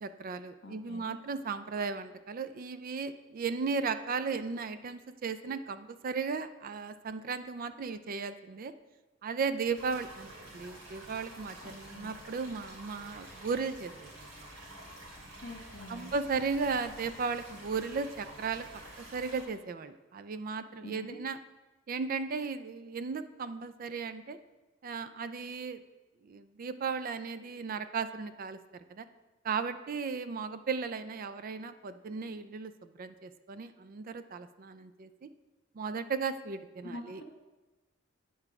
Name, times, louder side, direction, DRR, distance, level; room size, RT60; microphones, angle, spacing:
voice 1, 0.0-8.7 9.2-14.1 15.9-21.4 21.9-24.4 24.8-25.8 26.2-29.0 29.4-35.3 35.7-37.2, right 5 dB, 45° right, 12 dB, 0.4 m, -36 dB
voice 2, 0.6-1.2 11.6-12.1 15.4-16.1 20.8-21.2 36.8-37.2, left 1 dB, 55° left, 1 dB, 1.5 m, -46 dB
sound 1, 9.7-19.4, right 1 dB, 85° right, 3.1 m, -49 dB
8.8 x 4.7 x 5.9 m, 1.1 s
head